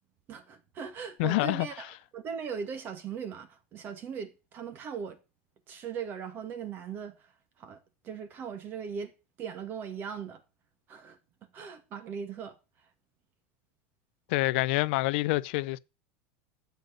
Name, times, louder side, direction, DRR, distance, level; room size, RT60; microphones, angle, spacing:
voice 1, 0.3-5.2 5.7-7.3 7.6-7.8 8.0-9.1 9.4-10.4 10.9-11.2 11.5-12.6, right 7 dB, 35° right, 2.1 m, -39 dB
voice 2, 1.2-1.7 14.3-15.8, left 21 dB, 65° left, 0.6 m, -27 dB
12.0 x 8.3 x 6.6 m
supercardioid pair, 145°, 6 cm